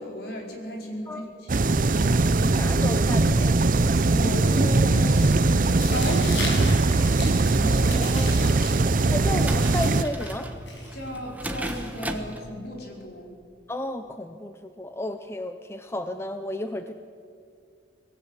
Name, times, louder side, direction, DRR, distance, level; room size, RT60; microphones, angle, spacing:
voice 1, 0.0-2.0 4.1-8.1 10.9-13.3, equal, 60° left, 0 dB, 5.0 m, -35 dB
sound 1, 1.5-10.0, right 3 dB, 50° right, 0.6 m, -21 dB
voice 2, 2.4-3.6 7.9-8.6 9.1-10.5 13.7-16.9, left 1 dB, 15° left, 7 dB, 0.7 m, -33 dB
Tearing, 5.8-12.4, left 2 dB, 85° left, 7.1 m, -38 dB
sound 2, 8.2-12.4, right 1 dB, 10° right, 1.3 m, -39 dB
25.0 x 18.0 x 8.4 m, 2.4 s
head